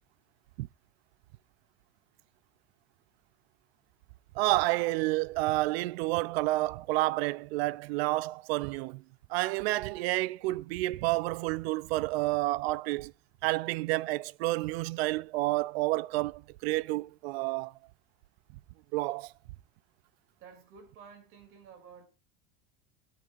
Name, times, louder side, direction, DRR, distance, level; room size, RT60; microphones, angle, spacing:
voice 1, 4.4-9.0 9.3-13.1 13.4-17.7 18.9-19.3, right 19 dB, 85° right, 0.5 m, -30 dB
voice 2, 20.4-22.1, right 6 dB, 45° right, 3.0 m, -52 dB
17.0 x 13.5 x 2.6 m
cardioid pair, 175°, 30 cm